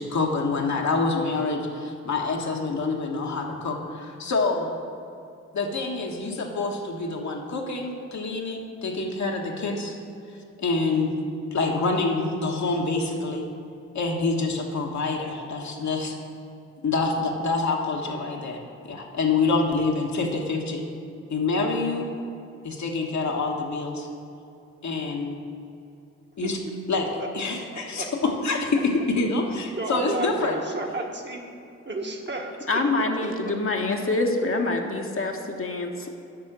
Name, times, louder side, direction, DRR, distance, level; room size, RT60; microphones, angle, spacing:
voice 1, 0.0-4.7 5.5-9.9 10.6-11.1 11.5-13.4 13.9-16.1 16.8-18.6 18.9-20.8 21.3-22.1 22.6-24.1 24.8-25.4 26.4-26.6 26.9-27.0 27.3-30.6, left 3 dB, 55° left, 0 dB, 1.5 m, -26 dB
voice 2, 26.4-26.7 27.2-28.1 29.8-31.4 31.8-32.8 33.2-33.3, right 2 dB, 35° right, 1 dB, 1.5 m, -33 dB
voice 3, 32.7-36.1, left 2 dB, 40° left, 2 dB, 1.2 m, -26 dB
7.5 x 5.6 x 7.4 m, 2.6 s
supercardioid pair, 45°, 33 cm